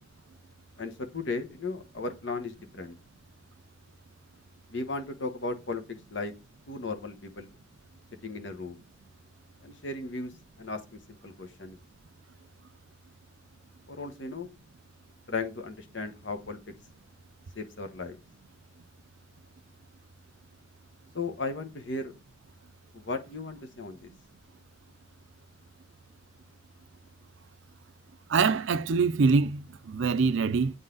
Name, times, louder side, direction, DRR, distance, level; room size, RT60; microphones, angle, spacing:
voice 1, 0.8-3.0 4.7-6.3 6.7-7.5 8.2-8.8 9.6-10.3 10.6-11.8 13.9-14.5 15.3-16.6 17.5-18.2 21.1-22.1 22.9-24.1, left 3 dB, 65° left, 1.0 m, -36 dB
voice 2, 28.3-29.6 29.9-30.7, right 4 dB, 70° right, 0.5 m, -24 dB
8.1 x 4.0 x 3.7 m
head